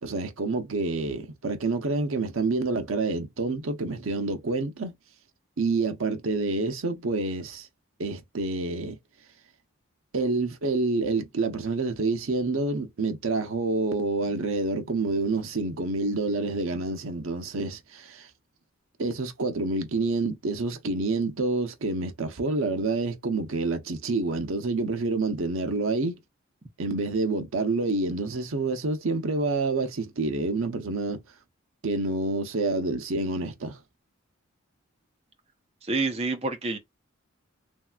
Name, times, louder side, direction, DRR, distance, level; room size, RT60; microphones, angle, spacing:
voice 1, 0.0-4.9 5.6-7.7 8.0-9.0 10.1-18.3 19.0-26.2 26.8-31.2 31.8-33.8, right 3 dB, 75° right, 0.7 m, -28 dB
voice 2, 35.9-36.8, right 3 dB, 30° right, 0.7 m, -27 dB
3.2 x 2.7 x 2.3 m
head